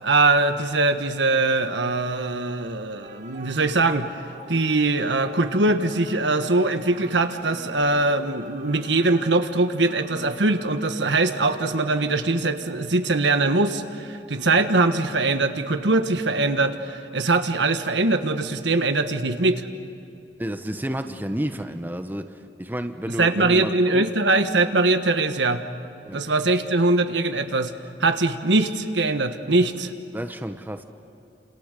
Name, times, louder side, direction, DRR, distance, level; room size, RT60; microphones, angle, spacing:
voice 1, 0.0-4.1 4.5-19.7 23.2-25.6 26.1-27.7 28.0-29.9, right 2 dB, 90° right, 8 dB, 1.5 m, -22 dB
sound 1, 3.0-12.5, right 2 dB, 45° right, 1.9 m, -44 dB
voice 2, 20.4-24.1 26.0-26.3 30.1-30.8, equal, 10° right, 7 dB, 1.1 m, -31 dB
29.5 x 27.5 x 6.8 m, 2.7 s
head